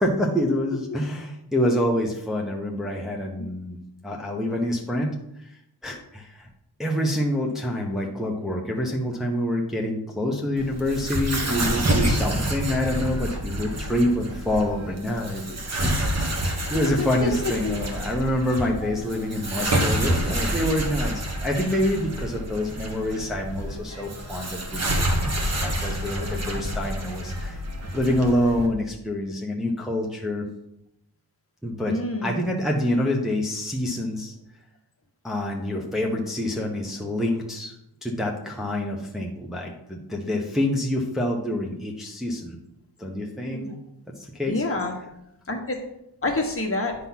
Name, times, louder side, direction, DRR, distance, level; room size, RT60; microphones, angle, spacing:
voice 1, 0.0-3.8 4.0-5.1 5.4-6.5 6.8-25.1 25.4-27.6 27.9-30.5 31.6-34.3 35.2-37.7 38.0-42.6 43.0-43.8 44.2-44.6, left 1 dB, ahead, -1 dB, 0.9 m, -27 dB
sound 1, 10.6-28.7, right 1 dB, 40° right, 1.3 m, -28 dB
voice 2, 16.7-17.3 17.6-17.7 18.7-18.9 31.9-32.4 43.5-43.7 44.5-44.9 45.5-45.8 46.2-47.0, left 2 dB, 35° left, 1 dB, 1.5 m, -28 dB
9.7 x 3.8 x 5.9 m, 0.82 s
wide cardioid pair, 130°, 41 cm